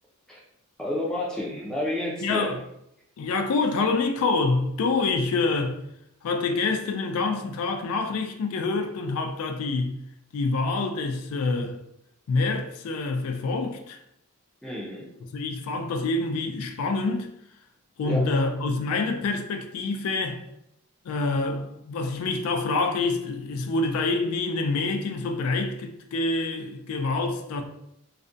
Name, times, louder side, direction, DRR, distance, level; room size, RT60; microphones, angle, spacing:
voice 1, 0.8-2.5 14.6-15.1 18.1-18.3, left 1 dB, 5° left, 0.4 m, -30 dB
voice 2, 2.2-2.6 3.2-5.8 6.2-10.0 10.3-11.8 12.3-14.0 15.3-17.3 18.0-20.5 21.0-27.6, left 3 dB, 80° left, 0.3 m, -26 dB
2.4 x 2.1 x 2.5 m
head